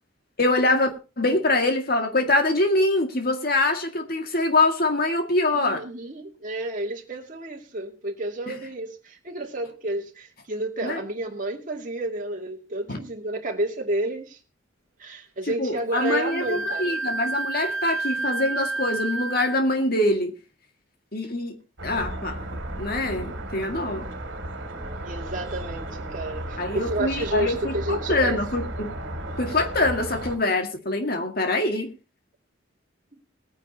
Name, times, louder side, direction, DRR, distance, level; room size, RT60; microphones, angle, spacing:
voice 1, 0.4-5.8 10.8-11.0 12.9-13.0 15.6-20.3 21.1-21.5 21.8-22.5 22.8-24.1 26.6-28.9 29.4-31.9, left 2 dB, 45° left, 2.1 m, -24 dB
voice 2, 5.5-14.4 15.0-16.9 25.0-28.4, right 1 dB, 40° right, 2.5 m, -30 dB
Wind instrument woodwind instrument, 15.9-19.6, right 3 dB, 90° right, 1.5 m, -30 dB
sound 1, 21.8-30.4, right 1 dB, 65° right, 2.6 m, -34 dB
20.5 x 9.6 x 2.9 m
head